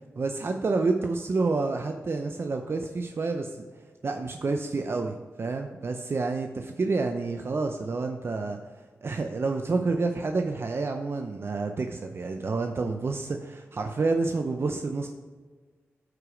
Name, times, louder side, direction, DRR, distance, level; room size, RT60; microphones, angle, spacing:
voice 1, 0.2-3.6 4.0-8.6 9.0-15.1, right 3 dB, 50° right, 5 dB, 0.7 m, -29 dB
10.5 x 4.9 x 5.0 m, 1.4 s
cardioid pair, 45°, 5 cm